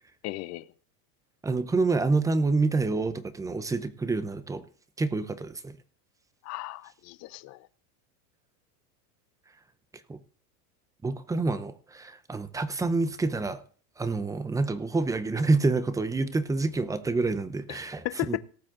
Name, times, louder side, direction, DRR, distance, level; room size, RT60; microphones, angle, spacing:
voice 1, 0.2-0.7 6.4-7.7 17.7-17.8 18.0-18.4, left 19 dB, 40° left, 0.7 m, -35 dB
voice 2, 1.4-4.6 5.0-5.8 10.1-10.2 11.0-13.6 14.0-18.4, right 3 dB, 10° right, 0.7 m, -27 dB
18.5 x 7.5 x 3.8 m
supercardioid pair, 145°, 44 cm